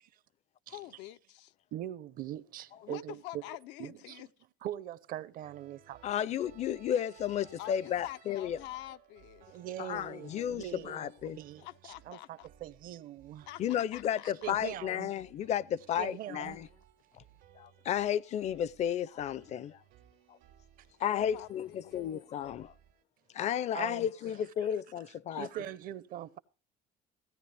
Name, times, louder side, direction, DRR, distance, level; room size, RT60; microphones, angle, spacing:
voice 1, 0.7-1.5 2.8-4.3 7.6-9.6 11.6-12.5 13.5-14.5 21.1-22.0, left 16 dB, 90° left, 0.5 m, -46 dB
voice 2, 1.7-3.4 3.8-4.2 4.6-6.0 9.5-13.5 14.4-15.1 16.0-16.6 23.7-24.1 25.3-26.4, right 12 dB, 55° right, 0.6 m, -42 dB
sound 1, 5.4-23.0, right 11 dB, 90° right, 2.1 m, -61 dB
voice 3, 6.0-8.6 9.8-11.4 13.6-16.7 17.6-19.8 21.0-22.7 23.3-25.5, left 10 dB, 40° left, 0.4 m, -33 dB
16.0 x 10.0 x 3.3 m
cardioid pair, 155°, 18 cm